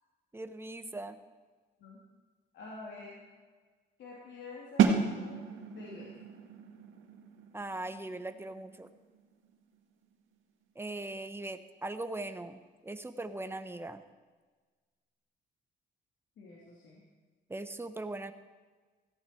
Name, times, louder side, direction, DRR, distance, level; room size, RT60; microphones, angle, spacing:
voice 1, 0.3-1.2 7.5-8.9 10.7-14.0 17.5-18.3, right 2 dB, 10° right, 10 dB, 1.0 m, -40 dB
voice 2, 2.5-3.2 4.0-5.4 5.7-6.1 16.4-17.0, left 3 dB, 70° left, -4 dB, 3.0 m, -47 dB
sound 1, 4.8-10.5, right 6 dB, 80° right, 1.8 m, -33 dB
17.0 x 14.5 x 4.6 m, 1.4 s
cardioid pair, 90°, 20 cm